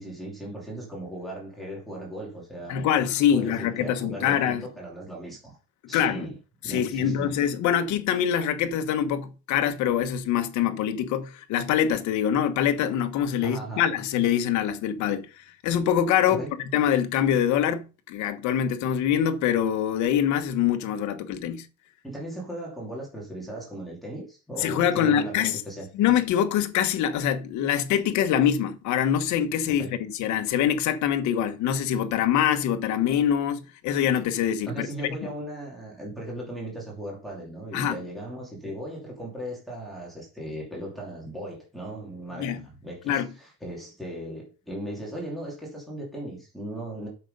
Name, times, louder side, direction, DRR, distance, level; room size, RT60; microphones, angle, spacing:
voice 1, 0.0-5.6 5.9-6.4 6.6-7.4 13.4-13.8 16.3-16.5 22.0-25.9 29.7-30.0 34.7-47.1, right 1 dB, ahead, 2.8 m, -37 dB
voice 2, 2.7-4.6 5.9-6.3 6.6-16.4 16.7-21.7 24.6-25.6 25.9-29.9 30.2-34.9 37.7-38.0 42.4-42.6 43.1-43.3, left 9 dB, 55° left, 1.3 m, -24 dB
8.7 x 6.6 x 5.3 m
cardioid pair, 170°, 34 cm